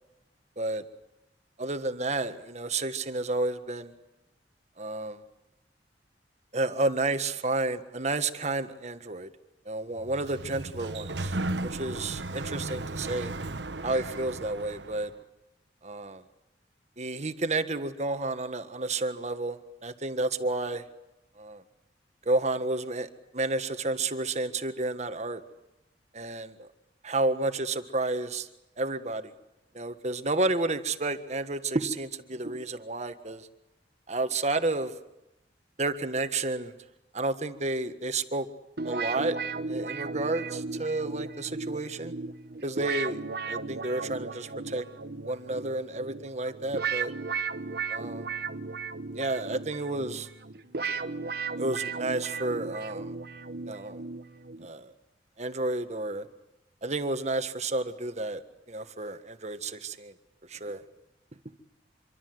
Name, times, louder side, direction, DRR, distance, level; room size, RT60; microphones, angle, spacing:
voice 1, 1.6-3.9 4.8-5.2 6.5-9.3 9.6-11.4 11.6-13.3 13.8-15.1 15.8-16.2 17.0-20.8 21.4-21.6 22.2-25.4 26.1-26.7 27.0-28.5 28.8-29.3 29.7-33.5 34.1-34.9 35.8-36.7 37.1-38.5 38.8-39.4 39.7-42.1 42.6-43.2 43.5-44.8 45.3-47.1 47.9-48.3 49.2-50.3 51.6-53.1 53.7-54.0 54.6-54.9 55.4-56.3 56.8-58.4 58.7-60.1 60.5-60.8, right 2 dB, 40° right, 9 dB, 1.6 m, -31 dB
Sliding door, 10.0-15.1, right 2 dB, 80° right, 1.2 m, -35 dB
sound 1, 38.8-54.7, right 4 dB, 60° right, 1.2 m, -35 dB
26.5 x 24.0 x 7.9 m, 0.92 s
head